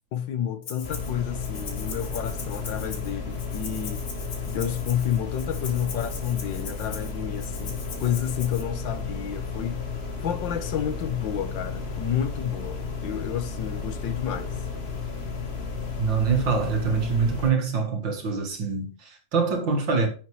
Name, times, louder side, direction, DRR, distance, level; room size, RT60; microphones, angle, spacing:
voice 1, 0.1-4.0 4.5-9.8 10.2-14.5, left 9 dB, 85° left, 1.7 m, -30 dB
Rattle (instrument), 0.6-1.1 1.4-8.6, left 5 dB, 65° left, 2.3 m, -41 dB
sound 1, 0.8-17.5, left 4 dB, 35° left, 1.4 m, -33 dB
voice 2, 16.0-20.1, right 5 dB, 80° right, 2.4 m, -25 dB
10.5 x 7.2 x 3.1 m
omnidirectional pair, 2.0 m